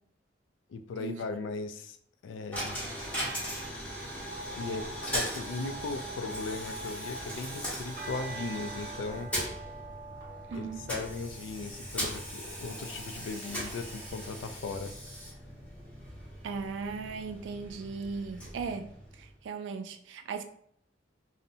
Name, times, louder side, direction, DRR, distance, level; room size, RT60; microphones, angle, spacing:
voice 1, 0.7-2.0 2.2-2.8 4.6-9.3 10.5-14.9, left 3 dB, 80° left, 0.3 m, -38 dB
Coin (dropping), 2.5-19.5, equal, 10° left, 0.9 m, -39 dB
sound 1, 8.0-17.2, right 4 dB, 45° right, 0.7 m, -48 dB
voice 2, 10.5-10.9 16.4-18.9 19.2-20.4, right 5 dB, 75° right, 0.3 m, -37 dB
2.7 x 2.1 x 2.6 m
head